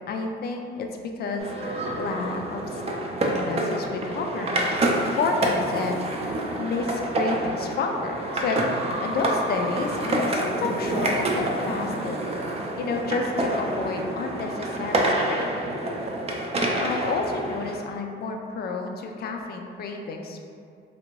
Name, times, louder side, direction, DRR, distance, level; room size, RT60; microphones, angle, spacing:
voice 1, 0.1-3.1 3.4-12.2 12.8-15.5 16.5-20.4, left 3 dB, 50° left, 3 dB, 0.4 m, -30 dB
sound 1, 1.4-17.8, right 1 dB, 30° right, 0.4 m, -27 dB
2.7 x 2.5 x 3.0 m, 2.4 s
cardioid pair, 90°, 20 cm